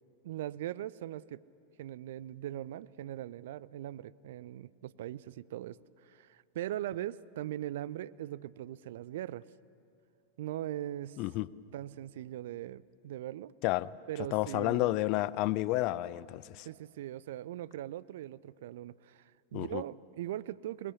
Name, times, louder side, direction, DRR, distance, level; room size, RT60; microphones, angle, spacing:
voice 1, 0.2-1.4 1.8-9.5 10.4-11.2 11.7-13.5 14.1-15.0 16.7-20.9, right 13 dB, 55° right, 0.5 m, -40 dB
voice 2, 11.2-11.5 13.6-13.9 14.3-16.7 19.5-19.8, left 17 dB, 40° left, 0.5 m, -31 dB
22.0 x 20.5 x 6.8 m
figure-of-eight pair, 90°, 0 cm